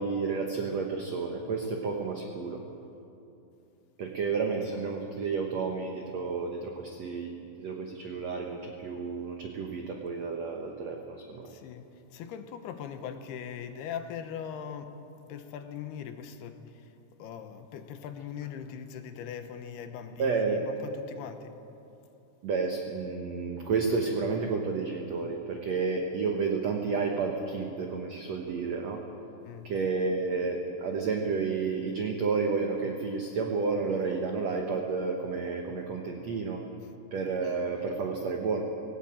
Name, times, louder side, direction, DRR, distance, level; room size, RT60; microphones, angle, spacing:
voice 1, 0.0-2.6 4.0-7.3 7.6-11.4 20.2-20.6 22.4-29.0 29.6-36.6 37.1-38.6, right 4 dB, 85° right, 1.5 m, -31 dB
voice 2, 11.5-15.0 15.3-16.9 17.2-21.6 29.4-29.7, left 8 dB, 75° left, 2.8 m, -40 dB
18.0 x 17.5 x 8.8 m
omnidirectional pair, 5.0 m